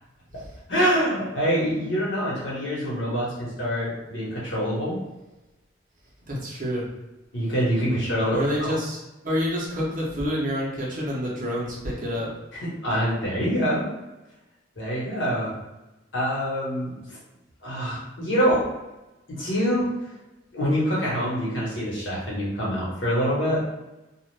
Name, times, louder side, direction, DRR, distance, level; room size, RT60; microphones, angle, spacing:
voice 1, 0.7-5.0 7.3-8.8 12.6-13.9 14.8-15.5 16.1-16.9 17.6-18.6 19.3-19.9 20.5-23.6, equal, 75° left, -6 dB, 1.2 m, -25 dB
voice 2, 6.3-6.9 8.3-12.3, equal, 45° right, -4 dB, 0.8 m, -28 dB
2.4 x 2.4 x 3.2 m, 1.0 s
head